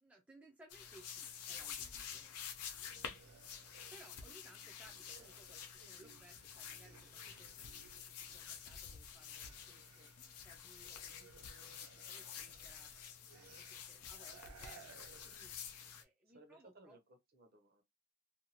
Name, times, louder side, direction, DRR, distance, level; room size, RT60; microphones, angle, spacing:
voice 1, 0.0-2.3 3.9-12.9 13.3-15.6 16.0-17.0, right 1 dB, 5° right, 0.4 m, -64 dB
sound 1, 0.7-16.0, left 7 dB, 90° left, 0.5 m, -50 dB
sound 2, 2.6-8.8 9.1-15.6, right 6 dB, 70° right, 0.4 m, -63 dB
voice 2, 3.0-3.6 16.3-17.8, right 2 dB, 45° right, 0.7 m, -63 dB
2.6 x 2.3 x 2.8 m
head